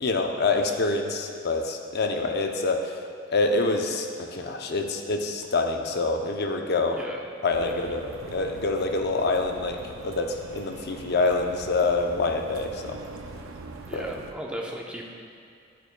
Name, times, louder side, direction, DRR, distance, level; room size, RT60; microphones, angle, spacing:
voice 1, 0.0-3.0 3.3-7.0 7.4-13.0 13.9-14.0, left 3 dB, 55° left, 4 dB, 0.6 m, -26 dB
sound 1, 7.5-14.3, right 3 dB, 90° right, 0.5 m, -42 dB
voice 2, 13.9-15.1, equal, 5° right, -1 dB, 0.7 m, -36 dB
9.4 x 9.2 x 2.3 m, 2.4 s
head